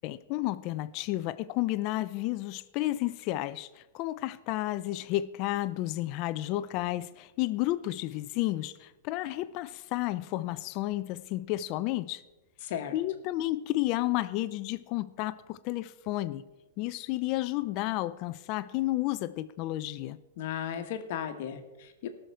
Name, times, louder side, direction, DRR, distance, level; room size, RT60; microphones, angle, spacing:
voice 1, 0.0-12.2 12.9-16.4 16.8-20.2, left 16 dB, 35° left, 0.4 m, -32 dB
voice 2, 12.6-13.0 20.4-22.1, left 9 dB, 50° left, 1.2 m, -35 dB
18.0 x 6.4 x 4.6 m
supercardioid pair, 165°, 0 cm